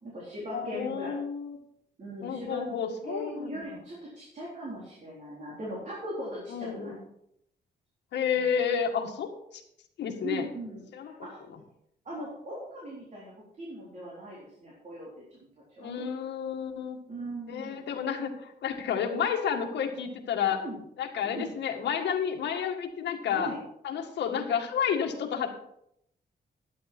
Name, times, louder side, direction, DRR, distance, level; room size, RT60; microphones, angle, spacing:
voice 1, 0.0-1.2 2.0-2.6 3.0-6.9 8.3-8.4 10.2-11.4 12.0-13.3 13.6-15.5 15.8-16.1 17.1-17.8 20.6-20.8 21.3-21.5 23.3-23.6, right 1 dB, 40° right, -5 dB, 4.0 m, -39 dB
voice 2, 0.5-1.6 2.2-3.6 6.5-7.0 8.1-9.3 10.0-10.5 10.9-11.1 15.8-17.0 17.5-20.6 21.0-23.5 23.8-25.5, left 7 dB, 80° left, 3 dB, 1.9 m, -30 dB
12.0 x 10.0 x 4.4 m, 0.76 s
cardioid pair, 145°, 18 cm